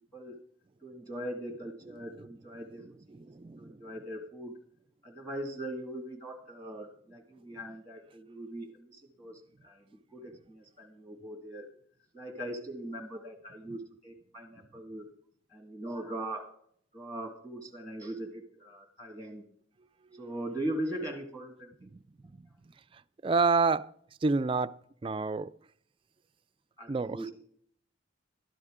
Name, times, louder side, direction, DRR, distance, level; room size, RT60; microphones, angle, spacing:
voice 1, 0.8-2.8 3.1-3.3 3.6-4.5 5.0-11.7 12.1-15.1 15.5-16.5 16.9-19.5 20.1-21.7 26.8-27.3, right 1 dB, 10° left, 1.7 m, -40 dB
voice 2, 2.8-3.8 13.7-13.8 21.8-22.0 22.4-22.5 22.9-23.9 24.2-25.5 26.9-27.2, right 4 dB, 25° right, 0.3 m, -30 dB
12.5 x 11.0 x 3.6 m
head